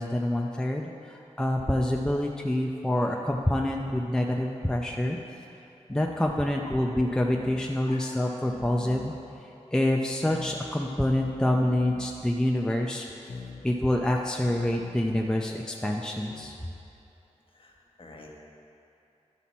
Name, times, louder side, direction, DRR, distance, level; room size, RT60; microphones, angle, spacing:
voice 1, 0.0-5.2 5.9-9.1 9.7-13.1 13.6-16.5, left 1 dB, 5° left, 0 dB, 0.5 m, -27 dB
sound 1, 5.9-16.5, left 3 dB, 75° left, 0.8 m, -46 dB
voice 2, 17.5-18.4, left 2 dB, 45° left, -2 dB, 1.3 m, -48 dB
11.5 x 5.8 x 4.2 m, 2.8 s
wide cardioid pair, 80°, 12 cm